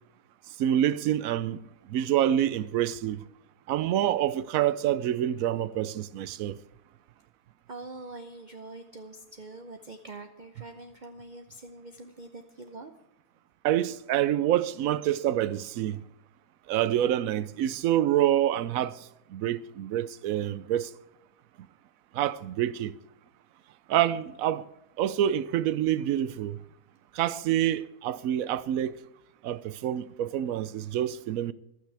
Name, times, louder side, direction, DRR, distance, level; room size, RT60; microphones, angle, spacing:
voice 1, 0.6-1.6 1.9-3.2 3.7-6.6 13.6-16.0 16.7-19.0 19.3-20.9 22.1-23.0 23.9-24.7 25.0-26.6 27.1-29.0 29.4-31.5, right 11 dB, 65° right, 1.0 m, -27 dB
voice 2, 7.7-12.9, right 2 dB, 40° right, 0.7 m, -44 dB
15.0 x 12.5 x 3.4 m
omnidirectional pair, 1.7 m